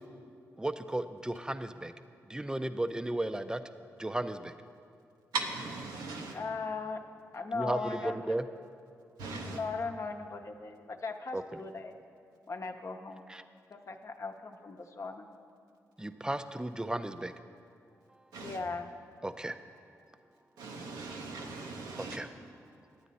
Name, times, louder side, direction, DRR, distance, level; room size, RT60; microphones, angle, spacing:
voice 1, 0.6-1.9 2.3-3.6 4.0-4.5 7.5-8.5 11.3-11.6 13.3-13.4 16.0-17.3 19.2-19.5 22.0-22.3, right 1 dB, 10° right, 10 dB, 0.5 m, -34 dB
voice 2, 5.3-6.4 9.2-9.6 18.3-18.6 20.6-22.2, right 3 dB, 85° right, 1 dB, 0.8 m, -38 dB
voice 3, 6.3-7.0 7.3-8.2 9.5-12.0 12.5-13.3 13.7-15.3 18.4-18.9, left 4 dB, 45° left, 5 dB, 0.8 m, -38 dB
9.6 x 9.0 x 4.1 m, 2.4 s
supercardioid pair, 45°, 7 cm